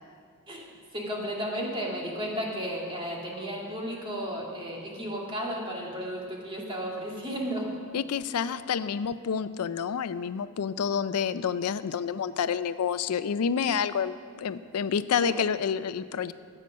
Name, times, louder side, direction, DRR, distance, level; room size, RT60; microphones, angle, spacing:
voice 1, 0.5-7.7 15.2-15.3, equal, 25° right, -2 dB, 2.2 m, -34 dB
voice 2, 7.9-16.3, left 7 dB, 85° left, 14 dB, 0.4 m, -29 dB
13.0 x 8.9 x 6.2 m, 2.2 s
head